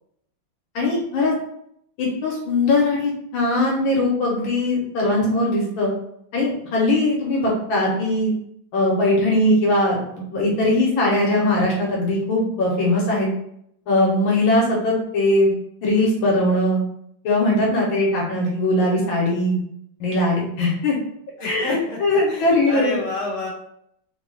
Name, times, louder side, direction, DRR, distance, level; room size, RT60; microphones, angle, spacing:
voice 1, 0.8-1.3 2.0-5.9 6.3-8.3 8.7-13.3 13.9-15.5 15.8-16.8 17.2-19.6 20.0-21.0 21.4-22.9, left 1 dB, 75° left, -2 dB, 1.6 m, -20 dB
voice 2, 21.4-23.5, left 2 dB, 25° left, -7 dB, 1.2 m, -29 dB
3.9 x 2.3 x 3.1 m, 0.72 s
omnidirectional pair, 2.3 m